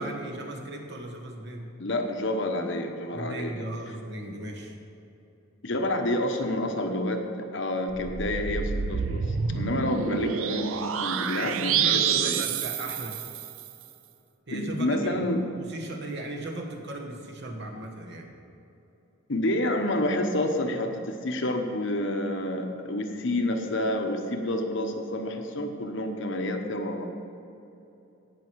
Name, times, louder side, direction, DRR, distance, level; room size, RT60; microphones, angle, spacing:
voice 1, 0.0-1.7 3.1-4.8 11.4-13.2 14.5-15.3 15.5-18.3, right 2 dB, 50° right, 1 dB, 1.3 m, -37 dB
voice 2, 1.8-3.7 5.6-12.4 14.5-15.5 19.3-27.0, left 1 dB, 55° left, 4 dB, 1.0 m, -29 dB
sound 1, 7.9-13.7, right 7 dB, 70° right, 0.5 m, -28 dB
17.0 x 6.1 x 4.7 m, 2.9 s
head